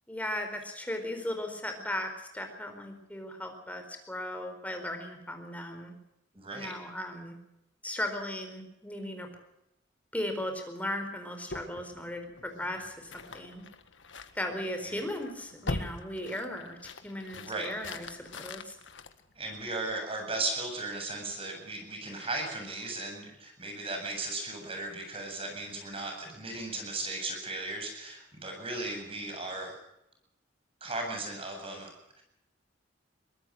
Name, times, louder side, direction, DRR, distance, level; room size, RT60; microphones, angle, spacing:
voice 1, 0.1-5.9 6.5-7.3 7.8-9.3 10.1-13.6 14.4-16.8 17.0-18.7, left 1 dB, 10° left, 5 dB, 4.3 m, -37 dB
voice 2, 6.3-6.8 14.8-15.0 17.3-17.7 19.3-29.7 30.8-32.2, right 2 dB, 30° right, 3 dB, 8.0 m, -36 dB
sound 1, 11.5-19.9, left 2 dB, 80° left, 1.8 m, -43 dB
23.0 x 19.5 x 6.4 m, 0.84 s
head